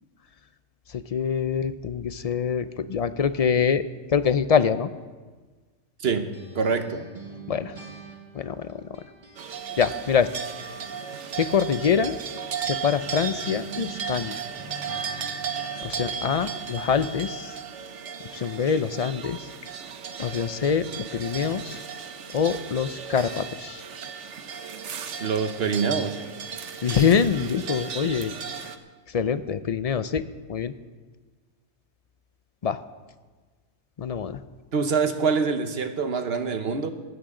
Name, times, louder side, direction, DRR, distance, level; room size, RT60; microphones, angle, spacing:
voice 1, 0.9-4.9 7.5-7.7 8.3-8.8 9.8-10.3 11.4-12.2 12.7-14.4 15.8-17.5 18.3-19.4 20.2-21.8 22.3-23.8 26.8-28.3 29.1-30.2 30.5-30.7 32.6-32.8 34.0-34.4, left 7 dB, 50° left, 13 dB, 0.4 m, -25 dB
sound 1, 6.0-9.5 9.8-16.2, right 3 dB, 40° right, 2.2 m, -44 dB
voice 2, 6.5-7.0 25.2-26.2 34.7-36.9, right 5 dB, 60° right, 8 dB, 1.2 m, -25 dB
sound 2, 9.4-28.8, right 6 dB, 85° right, 1.2 m, -35 dB
18.5 x 15.0 x 3.8 m, 1.4 s
omnidirectional pair, 1.2 m